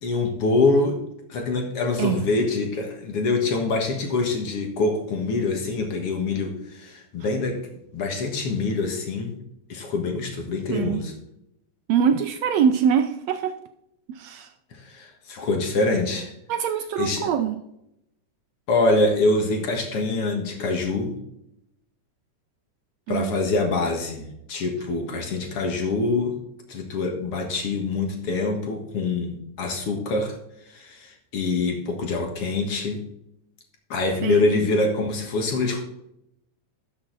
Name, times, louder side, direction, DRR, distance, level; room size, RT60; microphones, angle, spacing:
voice 1, 0.0-1.0 1.3-7.6 7.9-9.4 9.7-11.1 14.7-16.3 17.0-17.3 18.7-21.2 23.1-26.4 26.7-30.3 30.7-33.0 33.9-35.8, left 3 dB, 55° left, 3 dB, 2.3 m, -25 dB
voice 2, 10.7-11.0 11.9-13.5 14.1-14.5 16.5-17.6 23.1-23.4 34.2-34.5, right 8 dB, 75° right, 8 dB, 1.6 m, -23 dB
12.5 x 6.5 x 3.9 m, 0.80 s
omnidirectional pair, 3.6 m